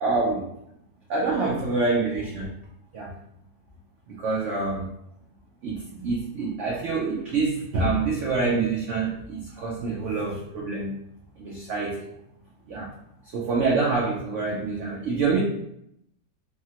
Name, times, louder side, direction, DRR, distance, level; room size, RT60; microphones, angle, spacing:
voice 1, 0.0-0.5 1.1-2.5 2.9-3.2 4.1-4.9 5.6-10.9 11.4-12.1 12.7-12.9 13.3-15.4, right 3 dB, 80° right, -3 dB, 0.6 m, -26 dB
3.4 x 2.0 x 2.8 m, 0.76 s
omnidirectional pair, 1.9 m